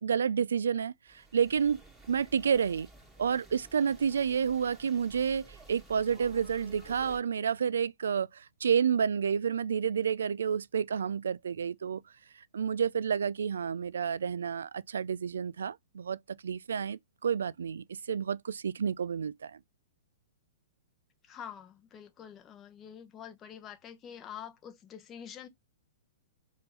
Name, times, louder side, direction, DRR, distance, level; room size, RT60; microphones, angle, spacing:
voice 1, 0.0-1.8 2.1-2.9 3.2-12.0 12.5-16.2 16.4-19.6, right 7 dB, 85° right, 0.3 m, -30 dB
sound 1, 1.1-7.2, right 3 dB, 5° right, 2.0 m, -53 dB
voice 2, 21.2-25.5, left 9 dB, 25° left, 0.7 m, -46 dB
4.5 x 2.5 x 4.1 m
hypercardioid pair, 135°, 0 cm